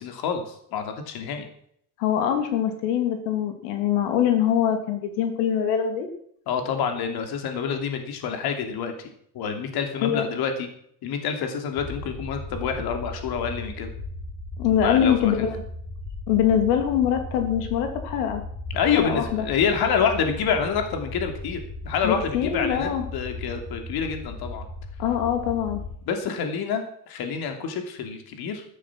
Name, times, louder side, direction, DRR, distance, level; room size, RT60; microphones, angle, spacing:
voice 1, 0.0-1.5 6.5-8.9 9.3-10.7 11.0-13.9 14.8-15.5 18.7-24.7 26.1-28.6, left 6 dB, 50° left, 6 dB, 2.9 m, -27 dB
voice 2, 2.0-6.1 10.0-10.3 14.6-15.7 16.3-18.4 19.0-19.5 22.0-23.1 25.0-25.8, left 9 dB, 90° left, 6 dB, 3.0 m, -23 dB
sound 1, 11.8-26.0, left 2 dB, 20° left, 3.7 m, -37 dB
13.5 x 12.5 x 6.2 m, 0.67 s
cardioid pair, 130°, 46 cm